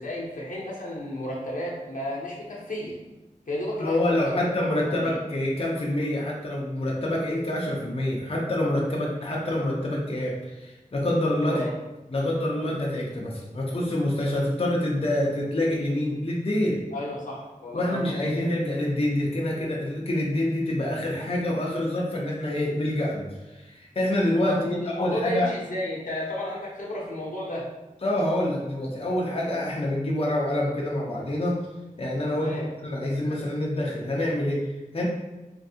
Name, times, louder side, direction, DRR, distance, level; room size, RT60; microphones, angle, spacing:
voice 1, 0.0-3.0 3.5-5.1 11.4-11.7 16.9-18.5 24.4-27.7 32.3-32.6, left 1 dB, 80° left, -4 dB, 0.8 m, -33 dB
voice 2, 3.8-11.6 12.1-16.8 17.7-25.5 28.0-31.6 32.0-32.5 32.8-35.0, left 1 dB, 45° left, -4 dB, 0.6 m, -26 dB
3.4 x 2.6 x 2.7 m, 1.0 s
wide cardioid pair, 65°, 14 cm